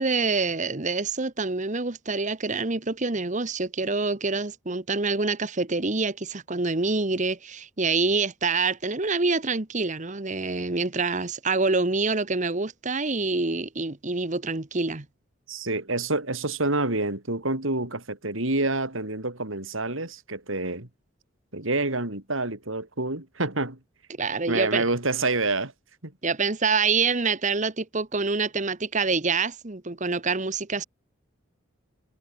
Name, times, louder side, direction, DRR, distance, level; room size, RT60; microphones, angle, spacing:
voice 1, 0.0-15.1 24.2-24.8 26.2-30.8, right 4 dB, 35° right, 1.2 m, -26 dB
voice 2, 15.5-20.9 21.5-23.8 24.5-25.7 26.0-26.1, right 2 dB, 75° right, 4.4 m, -27 dB
head